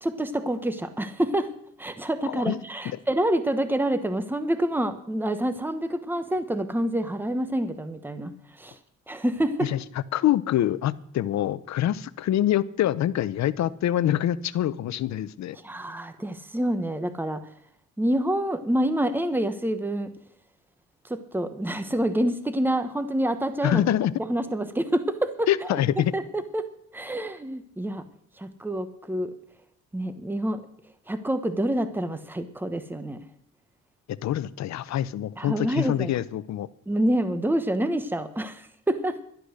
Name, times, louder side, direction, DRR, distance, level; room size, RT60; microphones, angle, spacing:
voice 1, 0.0-1.5 1.8-8.7 9.1-9.7 15.6-17.4 18.0-20.1 21.1-23.8 24.3-25.5 26.1-26.7 26.9-28.0 28.4-29.3 29.9-30.6 31.1-33.2 35.4-36.1 36.9-39.2, right 1 dB, 5° right, 10 dB, 1.2 m, -27 dB
voice 2, 2.3-2.6 9.6-9.8 10.1-15.6 23.6-24.1 25.5-26.1 34.1-36.7, left 12 dB, 65° left, 17 dB, 0.7 m, -25 dB
12.0 x 11.0 x 6.4 m, 0.68 s
cardioid pair, 90°, 30 cm